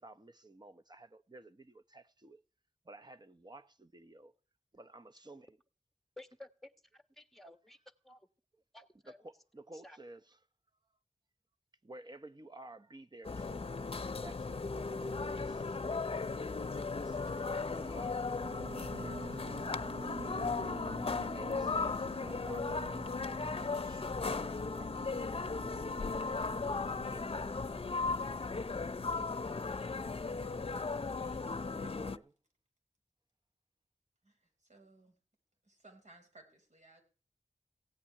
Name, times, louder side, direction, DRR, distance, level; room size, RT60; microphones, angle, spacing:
voice 1, 0.0-2.4 2.8-4.3 4.7-5.6 9.2-10.4 11.8-13.8 14.1-16.2 17.0-18.2 18.7-19.8 21.2-24.9 27.1-27.6 31.7-32.3, right 2 dB, 35° right, 1.0 m, -54 dB
voice 2, 6.2-7.8 8.0-8.3 8.7-9.2 9.7-10.0, left 2 dB, ahead, 1.5 m, -54 dB
sound 1, 13.2-32.2, left 4 dB, 50° left, 0.6 m, -36 dB
sound 2, 18.4-29.4, right 3 dB, 65° right, 0.8 m, -50 dB
voice 3, 34.7-35.2 35.7-37.0, right 2 dB, 80° right, 4.4 m, -60 dB
16.5 x 5.8 x 9.8 m
wide cardioid pair, 70°, 12 cm